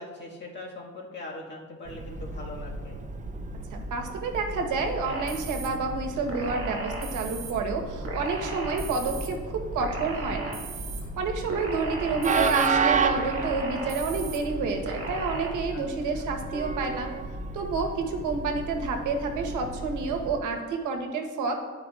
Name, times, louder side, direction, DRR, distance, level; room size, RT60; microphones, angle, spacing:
voice 1, 0.0-3.0 15.7-16.3, left 2 dB, 35° left, -2 dB, 1.7 m, -41 dB
Train, 1.9-20.4, right 4 dB, 25° right, 0.5 m, -33 dB
voice 2, 3.7-10.6 11.2-17.1 17.5-21.5, right 4 dB, 85° right, 4 dB, 1.1 m, -29 dB
sound 1, 5.0-5.7 6.3-7.5 8.0-9.3 9.8-11.0 11.5-12.7 13.2-14.4 14.8-15.5, right 3 dB, 45° right, 1.7 m, -36 dB
12.0 x 4.7 x 2.4 m, 1.5 s
cardioid pair, 90°, 30 cm